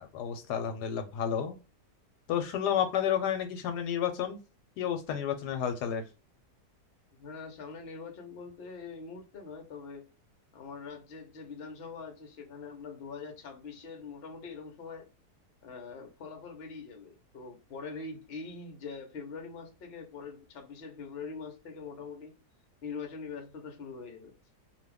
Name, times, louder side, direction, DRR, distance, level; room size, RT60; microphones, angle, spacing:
voice 1, 0.0-1.6 2.3-4.4 4.8-6.0, left 8 dB, 80° left, 1.2 m, -31 dB
voice 2, 7.1-10.1 10.5-15.1 15.6-22.4 22.8-24.4, left 5 dB, 50° left, 0.8 m, -43 dB
2.7 x 2.3 x 3.3 m
omnidirectional pair, 1.8 m